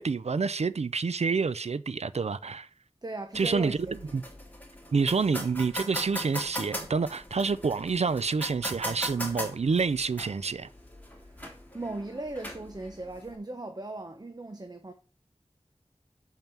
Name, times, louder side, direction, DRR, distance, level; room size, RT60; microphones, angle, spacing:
voice 1, 0.0-2.7 3.3-3.8 4.1-4.2 4.9-10.7, right 4 dB, 75° right, 0.4 m, -28 dB
voice 2, 3.0-4.2 11.7-14.9, right 2 dB, 35° right, 0.9 m, -38 dB
sound 1, 3.3-13.4, equal, 15° left, 3.0 m, -40 dB
7.3 x 5.5 x 5.9 m
wide cardioid pair, 45°, 11 cm